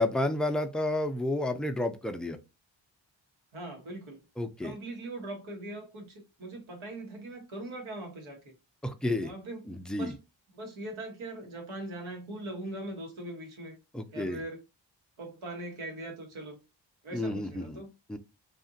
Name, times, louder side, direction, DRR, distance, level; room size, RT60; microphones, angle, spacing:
voice 1, 0.0-2.4 4.4-4.7 8.8-9.3 9.7-10.1 13.9-14.4 17.1-17.8 18.1-18.2, left 2 dB, ahead, 0.4 m, -30 dB
voice 2, 3.5-4.2 4.6-8.5 9.2-9.6 10.0-10.2 10.5-13.8 14.1-14.6 15.2-16.6 17.0-17.9, right 1 dB, 80° right, 1.1 m, -41 dB
2.7 x 2.4 x 2.6 m
cardioid pair, 45°, 47 cm